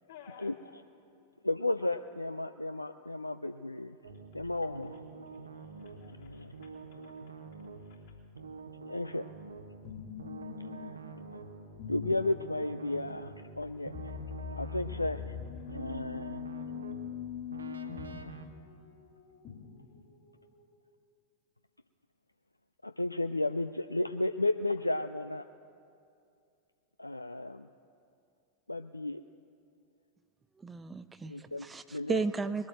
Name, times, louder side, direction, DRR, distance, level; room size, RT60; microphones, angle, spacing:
voice 1, 0.1-0.5 1.2-1.4 4.7-5.0 5.5-7.4 7.8-8.1 14.6-15.0 15.6-15.9 16.4-16.7 25.9-26.0 28.1-28.2, left 8 dB, 60° left, -3 dB, 3.3 m, -58 dB
voice 2, 1.4-4.0 4.3-5.0 6.1-6.5 8.8-9.2 10.7-10.9 11.3-11.4 11.9-14.1 14.5-15.4 15.7-16.4 22.8-25.4 27.0-27.7 28.7-29.2 31.3-32.2, left 2 dB, 85° left, 10 dB, 0.3 m, -33 dB
sound 1, 4.0-18.5, right 4 dB, 75° right, 1.0 m, -47 dB
sound 2, 9.8-20.6, left 7 dB, 35° left, 2.5 m, -43 dB
voice 3, 30.6-32.7, right 4 dB, 15° right, 13 dB, 0.4 m, -34 dB
21.0 x 8.8 x 7.6 m, 2.5 s
figure-of-eight pair, 90°, 0 cm